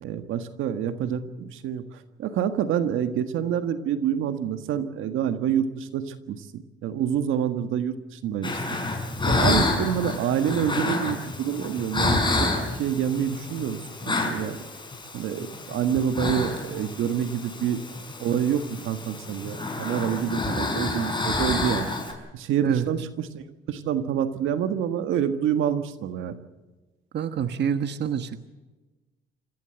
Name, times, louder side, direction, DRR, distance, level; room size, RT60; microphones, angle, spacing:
voice 1, 0.0-8.6 9.2-12.5 12.8-14.6 15.1-17.8 18.2-21.9 22.3-26.4, right 9 dB, 85° right, 9 dB, 1.7 m, -27 dB
sound 1, 8.4-22.1, left 2 dB, 25° left, 5.8 m, -29 dB
voice 2, 27.1-28.5, right 8 dB, 60° right, 9 dB, 1.3 m, -27 dB
27.0 x 15.0 x 8.1 m, 1.2 s
cardioid pair, 90°, 20 cm